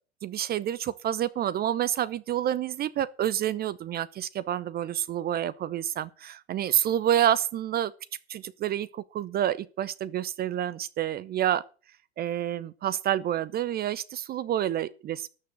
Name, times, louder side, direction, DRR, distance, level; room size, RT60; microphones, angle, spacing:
voice 1, 0.2-7.9 8.3-11.6 12.2-15.3, right 11 dB, 30° right, 0.7 m, -28 dB
13.0 x 7.0 x 7.7 m
hypercardioid pair, 95°, 33 cm